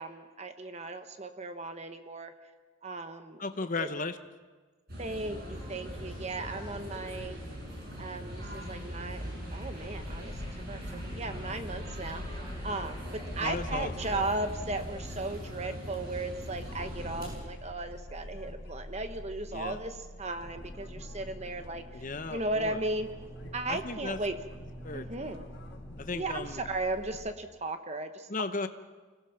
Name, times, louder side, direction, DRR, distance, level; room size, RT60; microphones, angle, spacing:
voice 1, 0.0-2.3 2.8-3.4 3.8-3.9 5.0-7.4 8.0-10.8 11.1-22.0 22.3-23.1 23.5-24.4 24.9-25.5 26.1-28.3, right 2 dB, 30° right, 8 dB, 1.2 m, -36 dB
voice 2, 3.4-4.2 13.4-13.9 19.5-19.8 21.9-22.8 23.7-24.2 24.8-25.3 26.0-26.6 28.3-28.7, left 3 dB, 40° left, 9 dB, 0.9 m, -35 dB
sound 1, 4.9-17.4, equal, 45° right, 7.9 m, -41 dB
sound 2, 9.8-27.3, left 1 dB, 55° left, 1.2 m, -46 dB
sound 3, 20.3-26.7, right 1 dB, 10° right, 5.5 m, -50 dB
25.5 x 18.0 x 5.9 m, 1.4 s
head